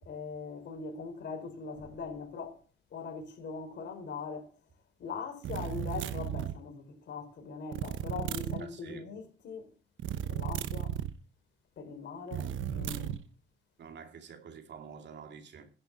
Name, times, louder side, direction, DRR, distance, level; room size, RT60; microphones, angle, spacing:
voice 1, 0.1-2.6 2.9-4.5 5.0-9.7 10.3-10.9 11.8-13.2, left 5 dB, 60° left, 4.2 m, -41 dB
sound 1, 5.4-6.6 7.7-8.6 10.0-11.2 12.3-13.2, right 10 dB, 75° right, 0.9 m, -34 dB
voice 2, 8.6-9.1 13.8-15.7, right 6 dB, 60° right, 2.5 m, -48 dB
11.0 x 6.3 x 8.3 m
cardioid pair, 90°, 20 cm